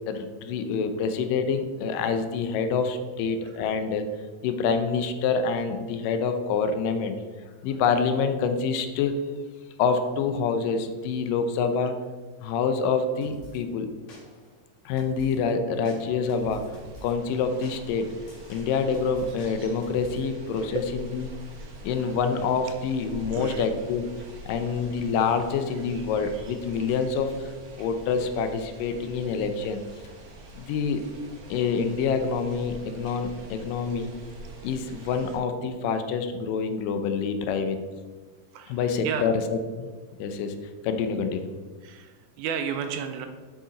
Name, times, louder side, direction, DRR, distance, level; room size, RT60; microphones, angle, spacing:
voice 1, 0.1-4.1 4.4-7.2 7.6-9.1 9.8-11.9 12.4-13.9 14.9-16.6 17.0-18.1 18.5-21.3 21.8-24.1 24.5-29.8 30.6-31.0 31.5-34.1 34.6-37.8 38.7-39.9 40.2-40.5 40.8-41.5, left 5 dB, 85° left, 8 dB, 2.3 m, -26 dB
sound 1, 13.2-13.6 14.1-14.5 15.0-15.4 15.8-17.1 17.6-20.3, left 1 dB, 55° left, 2.6 m, -47 dB
sound 2, 16.2-35.4, right 2 dB, 65° right, 1.1 m, -45 dB
voice 2, 23.3-23.7 38.5-39.3 41.8-43.3, right 6 dB, 80° right, 7 dB, 1.9 m, -33 dB
8.4 x 5.5 x 3.8 m, 1.4 s
omnidirectional pair, 3.8 m